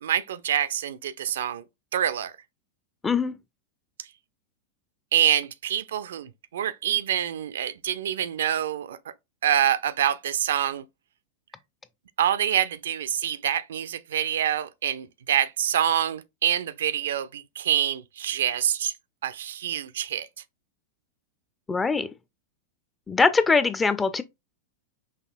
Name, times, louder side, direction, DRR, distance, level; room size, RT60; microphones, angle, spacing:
voice 1, 0.0-1.6 1.9-2.3 5.1-9.0 9.4-10.8 12.2-18.9 19.2-20.3, right 10 dB, 60° right, 0.3 m, -26 dB
voice 2, 21.7-22.1 23.1-24.2, left 4 dB, 15° left, 0.4 m, -22 dB
5.7 x 2.7 x 2.5 m
figure-of-eight pair, 90°, 0 cm